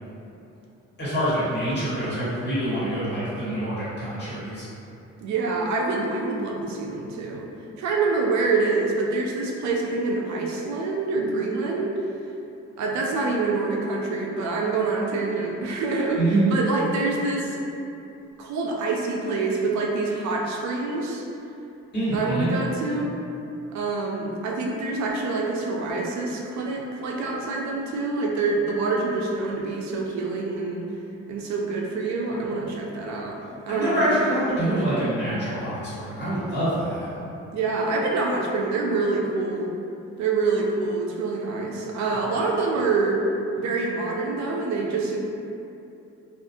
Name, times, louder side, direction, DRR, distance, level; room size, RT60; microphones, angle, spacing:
voice 1, 1.0-4.7 16.1-16.6 21.9-22.5 33.7-37.1, right 1 dB, 35° left, -11 dB, 1.4 m, -25 dB
voice 2, 5.2-7.5 7.8-12.0 12.8-16.2 16.5-17.6 18.4-21.2 22.1-23.1 23.7-30.8 31.3-33.4 33.7-34.3 37.5-39.7 40.2-43.2 43.6-45.2, right 3 dB, 65° right, -1 dB, 0.5 m, -26 dB
2.5 x 2.4 x 2.6 m, 2.7 s
cardioid pair, 90°, 30 cm